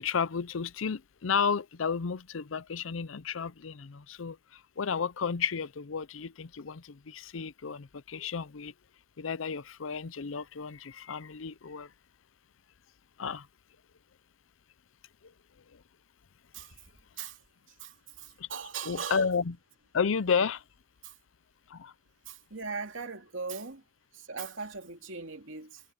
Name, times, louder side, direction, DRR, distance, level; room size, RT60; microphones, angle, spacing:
voice 1, 0.0-4.4 4.8-8.7 9.2-11.9 13.2-13.5 18.4-18.5 18.8-19.6 19.9-20.6 21.7-21.9, left 6 dB, 75° left, 0.6 m, -32 dB
voice 2, 17.8-19.2 21.0-21.1 22.3-23.8 24.1-25.8, right 5 dB, 70° right, 2.8 m, -39 dB
head